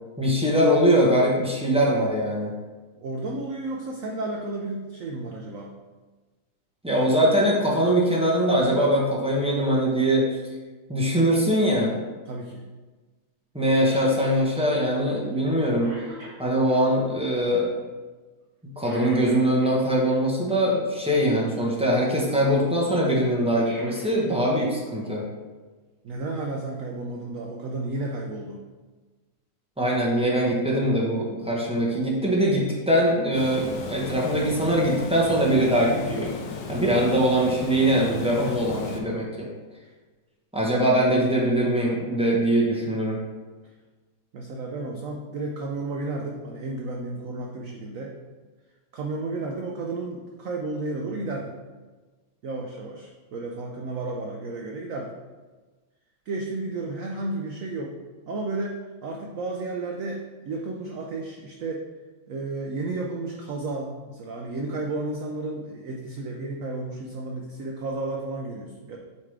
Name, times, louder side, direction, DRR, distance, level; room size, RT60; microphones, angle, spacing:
voice 1, 0.2-2.6 6.8-10.3 10.9-11.9 13.5-15.9 16.4-17.7 18.6-25.3 29.8-36.3 36.7-39.5 40.5-43.2, equal, 5° right, -4 dB, 0.4 m, -22 dB
voice 2, 3.0-5.7 12.3-12.6 26.0-28.6 44.3-48.2 48.9-51.5 52.4-55.1 56.3-58.0 58.3-61.8 62.3-69.0, right 2 dB, 75° right, 1 dB, 0.7 m, -32 dB
Cough, 13.9-14.4 14.7-14.9 15.3-15.5 15.8-16.8 18.8-20.2 23.4-24.7 25.0-25.1 26.2-26.3, right 1 dB, 50° right, 2.5 m, -42 dB
Water, 33.3-39.0, left 4 dB, 65° left, 1.1 m, -35 dB
8.2 x 3.6 x 3.3 m, 1.3 s
omnidirectional pair, 2.1 m